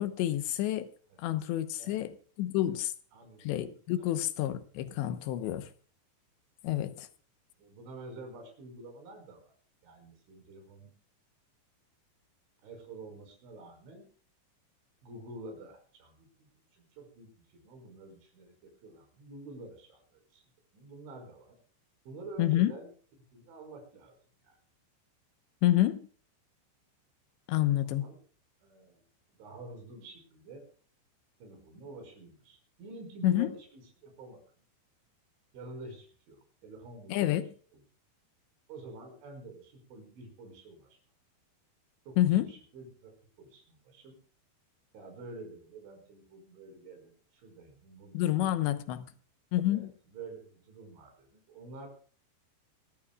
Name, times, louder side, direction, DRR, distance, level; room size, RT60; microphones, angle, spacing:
voice 1, 0.0-0.9 1.2-2.9 3.4-5.7 6.6-7.1 22.4-22.7 25.6-26.0 27.5-28.1 33.2-33.5 37.1-37.5 42.2-42.5 48.1-49.1 49.5-49.9, left 13 dB, 75° left, 3.1 m, -28 dB
voice 2, 3.1-3.5 4.0-4.1 5.5-5.6 6.7-6.9 7.6-9.5 9.8-10.9 12.6-14.0 15.0-20.4 20.7-21.6 22.1-22.9 23.3-24.1 24.4-24.6 27.8-28.2 28.6-29.0 29.4-30.6 31.4-34.4 35.5-37.2 38.7-41.0 42.1-44.2 44.9-48.2 49.7-51.9, right 2 dB, 80° right, 7.6 m, -48 dB
26.0 x 14.0 x 2.4 m
omnidirectional pair, 5.4 m